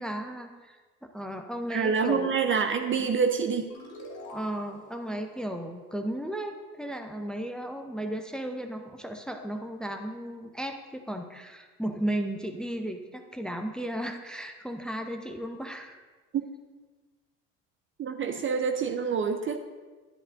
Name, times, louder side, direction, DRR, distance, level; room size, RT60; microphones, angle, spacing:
voice 1, 0.0-2.3 4.3-16.0, right 1 dB, ahead, 4 dB, 0.7 m, -35 dB
voice 2, 1.7-3.7 18.0-19.6, right 5 dB, 30° right, 6 dB, 0.7 m, -26 dB
sound 1, 3.7-6.9, left 1 dB, 80° left, 2.6 m, -47 dB
10.5 x 10.5 x 2.6 m, 1.3 s
hypercardioid pair, 70°, 40 cm